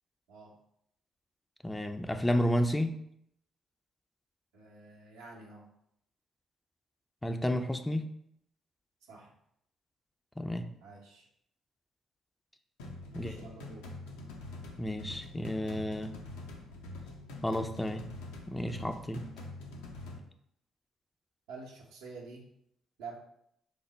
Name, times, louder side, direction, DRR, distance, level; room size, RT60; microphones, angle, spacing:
voice 1, 1.6-3.0 7.2-8.1 10.4-10.6 13.1-13.4 14.8-16.1 17.4-18.1 18.5-19.2, equal, 15° left, 7 dB, 0.3 m, -31 dB
voice 2, 4.5-5.7 9.1-9.3 10.8-11.3 13.1-13.9 21.5-22.5 23.0-23.2, right 4 dB, 75° right, -2 dB, 0.7 m, -48 dB
sound 1, 12.8-20.2, left 2 dB, 75° left, 0.4 m, -45 dB
3.2 x 2.0 x 3.9 m, 0.74 s
hypercardioid pair, 45°, 0 cm